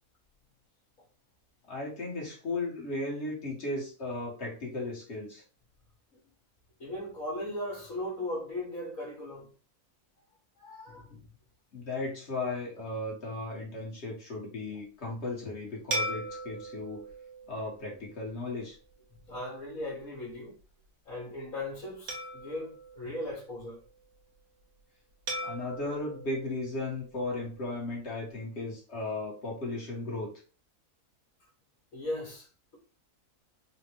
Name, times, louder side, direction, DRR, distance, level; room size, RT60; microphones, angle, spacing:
voice 1, 1.7-5.4 11.7-17.0 17.5-18.8 25.4-30.3, left 2 dB, 50° left, 1.5 m, -36 dB
voice 2, 6.8-9.5 10.6-11.2 19.3-20.5 21.0-23.8 31.9-32.5, left 1 dB, 70° left, 1.7 m, -37 dB
sound 1, 15.9-18.6 19.2-19.4 22.1-23.9 25.3-27.6, right 1 dB, 90° right, 1.3 m, -39 dB
3.9 x 2.2 x 2.9 m
omnidirectional pair, 1.5 m